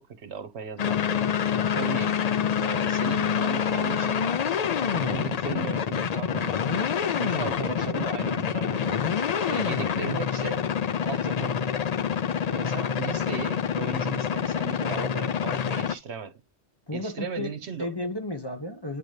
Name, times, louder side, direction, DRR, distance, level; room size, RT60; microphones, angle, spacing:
voice 1, 0.0-1.3 1.7-2.2 2.6-4.4 4.9-9.0 9.4-10.7 11.0-11.9 12.4-16.4 16.9-17.9, right 7 dB, 70° right, 1.2 m, -37 dB
sound 1, 0.8-16.0, left 7 dB, 50° left, 0.5 m, -27 dB
voice 2, 1.5-1.9 12.5-12.9 16.9-17.5 17.8-19.0, left 1 dB, 20° left, 1.0 m, -34 dB
9.5 x 3.9 x 3.3 m
omnidirectional pair, 1.2 m